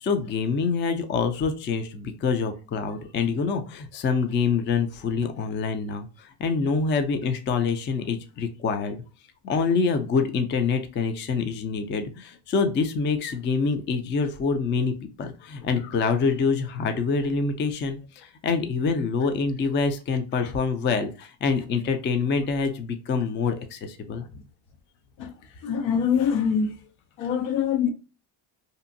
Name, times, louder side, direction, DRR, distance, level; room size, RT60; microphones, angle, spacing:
voice 1, 0.0-9.0 9.4-24.3, left 5 dB, 25° left, 0.4 m, -26 dB
voice 2, 25.6-26.7 27.2-27.9, left 7 dB, 75° left, 0.7 m, -23 dB
2.7 x 2.5 x 2.5 m
supercardioid pair, 95°, 46 cm